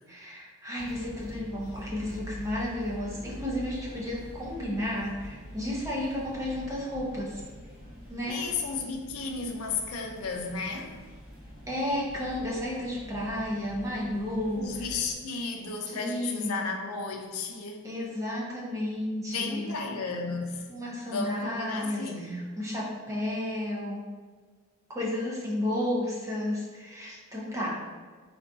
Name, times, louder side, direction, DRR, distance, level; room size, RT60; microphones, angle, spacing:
voice 1, 0.1-7.4 8.1-8.4 11.7-14.7 15.9-16.6 17.8-19.8 20.7-24.0 24.9-27.8, left 1 dB, 15° right, -5 dB, 0.5 m, -32 dB
sound 1, 0.8-15.1, equal, 35° right, 0.9 m, -45 dB
voice 2, 8.3-11.0 14.5-17.9 19.3-20.7 21.1-22.4, left 4 dB, 85° left, 3 dB, 0.4 m, -34 dB
3.7 x 2.5 x 2.3 m, 1.5 s
head